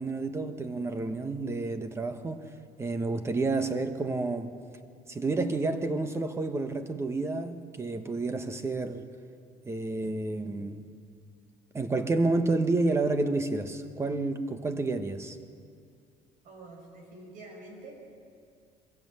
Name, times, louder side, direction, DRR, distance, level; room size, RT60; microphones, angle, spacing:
voice 1, 0.0-2.5 2.8-4.6 5.1-9.1 9.6-10.9 11.7-15.4, right 3 dB, 20° right, 1.2 m, -30 dB
voice 2, 16.4-17.9, right 2 dB, 65° right, 6.2 m, -47 dB
23.0 x 16.0 x 7.8 m
cardioid pair, 130°, 15 cm